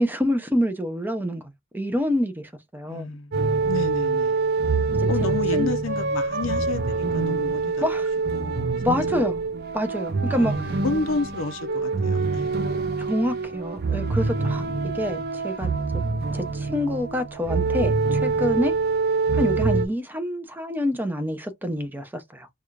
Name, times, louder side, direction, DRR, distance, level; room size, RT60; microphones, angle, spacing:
voice 1, 0.0-3.2 5.0-5.1 5.5-5.7 7.8-8.1 8.8-9.4 9.7-10.5 13.0-15.7 16.3-18.7 19.3-22.5, equal, 10° right, 0.6 m, -27 dB
voice 2, 2.8-3.4 3.6-4.4 5.1-7.8 8.3-8.7 10.3-12.5 14.5-15.1, left 3 dB, 80° left, 0.6 m, -31 dB
sound 1, 3.3-19.9, right 4 dB, 50° right, 0.6 m, -25 dB
4.8 x 2.4 x 2.4 m
head